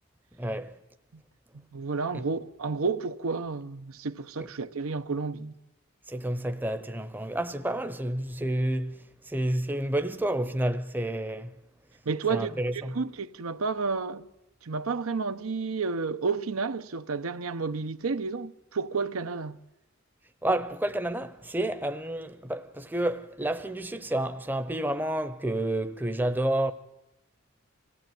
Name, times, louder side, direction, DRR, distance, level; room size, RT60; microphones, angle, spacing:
voice 1, 0.4-0.7 2.1-2.2 6.1-9.0 9.3-11.5 12.3-13.0 20.4-26.7, right 1 dB, 10° right, 0.7 m, -30 dB
voice 2, 1.5-5.5 12.0-14.3 14.6-19.6, right 4 dB, 80° right, 0.7 m, -31 dB
25.5 x 16.5 x 9.2 m
head